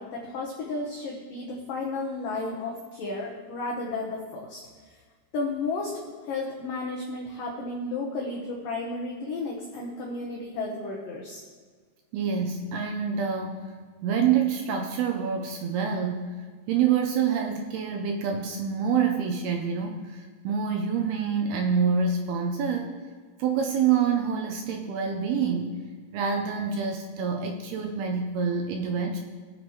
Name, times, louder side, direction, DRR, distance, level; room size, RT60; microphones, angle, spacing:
voice 1, 0.0-4.7 5.3-11.4, left 3 dB, 65° left, -2 dB, 2.3 m, -33 dB
voice 2, 12.1-13.7 14.0-16.4 16.7-22.9 23.4-25.8 26.1-29.2, right 6 dB, 75° right, 3 dB, 2.5 m, -26 dB
20.5 x 8.0 x 3.2 m, 1.5 s
omnidirectional pair, 5.1 m